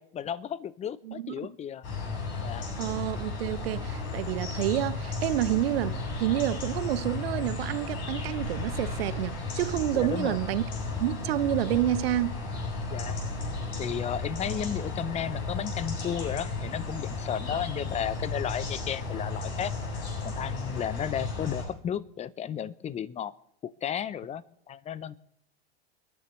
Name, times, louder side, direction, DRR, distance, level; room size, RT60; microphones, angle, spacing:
voice 1, 0.0-1.9 2.4-2.7 9.9-10.4 12.9-13.2 13.8-19.7 20.2-23.3 23.6-25.1, left 9 dB, 20° left, 0.6 m, -33 dB
voice 2, 1.0-1.5 2.8-10.7 11.0-12.4, right 14 dB, 70° right, 0.9 m, -29 dB
sound 1, 1.8-21.7, left 3 dB, 50° left, 7.9 m, -34 dB
30.0 x 10.5 x 3.2 m
hypercardioid pair, 100°, 32 cm